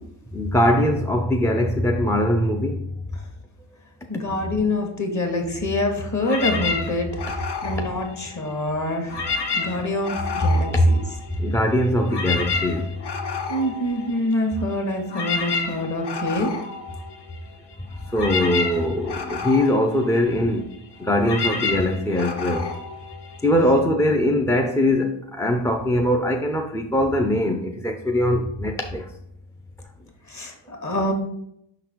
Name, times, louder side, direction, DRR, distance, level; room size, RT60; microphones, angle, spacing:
voice 1, 0.3-2.8 11.4-12.9 18.1-20.7 21.0-22.7 23.4-29.1, left 1 dB, 5° left, 0.5 m, -21 dB
voice 2, 4.1-9.3 9.6-11.0 13.5-16.5 30.3-31.1, left 1 dB, 35° left, 1.6 m, -24 dB
sound 1, 6.2-8.7 9.0-11.6 11.9-23.8, left 4 dB, 55° left, 1.1 m, -30 dB
5.7 x 3.9 x 4.5 m
cardioid pair, 85°, 48 cm